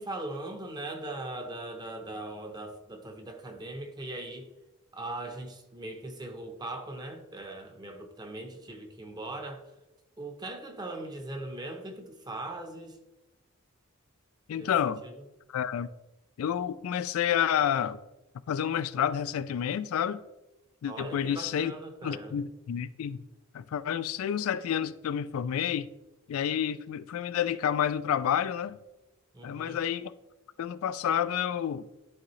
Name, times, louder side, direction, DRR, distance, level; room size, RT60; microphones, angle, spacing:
voice 1, 0.0-4.5 4.9-9.7 10.2-13.0 14.5-14.7 15.0-15.1 20.8-22.3 29.3-29.8, right 2 dB, 20° right, 0.8 m, -40 dB
voice 2, 14.5-15.0 15.5-15.9 16.4-18.0 18.5-20.2 20.8-21.7 22.0-23.2 23.5-25.9 26.3-28.8 29.4-30.1 30.6-31.9, left 9 dB, 80° left, 0.3 m, -29 dB
11.0 x 3.8 x 3.1 m
head